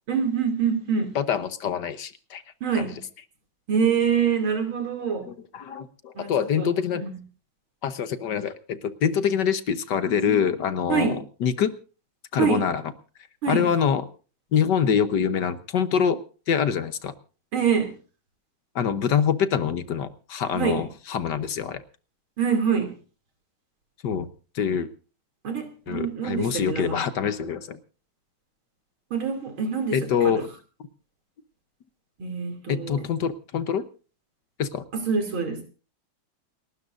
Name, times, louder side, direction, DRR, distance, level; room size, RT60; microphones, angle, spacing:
voice 1, 0.1-1.1 2.6-3.0 3.7-5.3 6.2-6.3 6.6-7.1 10.9-11.2 12.4-12.6 13.4-13.7 17.5-18.0 20.5-20.8 22.4-22.9 25.4-27.0 29.1-30.0 30.2-30.4 32.2-33.0 34.9-35.6, right 6 dB, 85° right, 3.6 m, -25 dB
voice 2, 1.1-2.4 2.7-2.9 5.3-7.0 7.8-11.7 12.3-12.8 13.5-14.0 14.5-16.2 16.5-17.1 18.7-21.8 24.0-24.3 24.5-24.9 25.9-27.8 29.9-30.5 32.7-33.8 34.6-34.8, left 7 dB, 65° left, 1.5 m, -25 dB
29.0 x 12.5 x 2.6 m
omnidirectional pair, 2.2 m